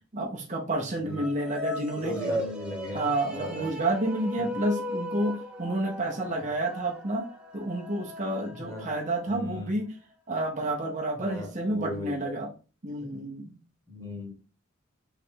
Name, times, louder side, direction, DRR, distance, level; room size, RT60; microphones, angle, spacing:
voice 1, 0.1-2.4 2.9-7.3 7.5-9.9 10.3-12.5 12.8-13.6, right 1 dB, 35° right, 1 dB, 0.7 m, -30 dB
sound 1, 1.0-9.5, equal, 5° right, 0.7 m, -37 dB
voice 2, 2.0-3.7 4.4-4.5 6.3-6.4 8.5-8.9 9.3-9.7 11.2-12.4 13.0-13.2 13.9-14.3, left 1 dB, 15° left, 1 dB, 1.1 m, -38 dB
3.3 x 3.1 x 4.5 m, 0.35 s
head